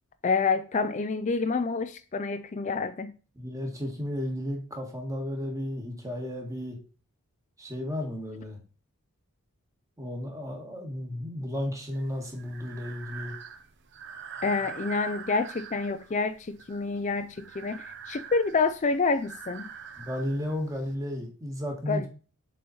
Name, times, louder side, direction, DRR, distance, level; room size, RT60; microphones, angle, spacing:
voice 1, 0.2-3.1 14.4-19.7 21.9-22.1, left 4 dB, 35° left, 0.4 m, -28 dB
voice 2, 3.4-6.8 7.6-8.6 10.0-13.4 20.0-22.1, left 1 dB, 15° right, 1.9 m, -33 dB
Breathing, 11.9-20.9, right 6 dB, 55° right, 0.8 m, -44 dB
7.4 x 4.2 x 4.2 m
head